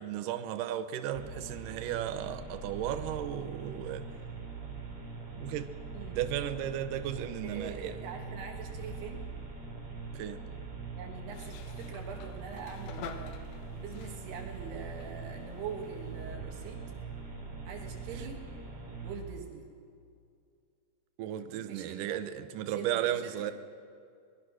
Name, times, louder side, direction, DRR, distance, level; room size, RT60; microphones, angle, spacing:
voice 1, 0.0-4.1 5.4-5.7 6.1-8.0 10.1-10.4 21.2-23.5, right 11 dB, 90° right, 10 dB, 1.8 m, -35 dB
sound 1, 1.1-19.2, right 4 dB, 35° right, 4.9 m, -42 dB
voice 2, 7.2-9.2 11.0-13.3 13.8-16.8 17.7-18.4 19.0-19.7 21.5-22.2 22.7-23.5, right 6 dB, 70° right, 2 dB, 3.8 m, -43 dB
sound 2, 11.3-16.4, left 8 dB, 80° left, 3.2 m, -49 dB
23.5 x 20.0 x 6.2 m, 2.4 s
omnidirectional pair, 5.0 m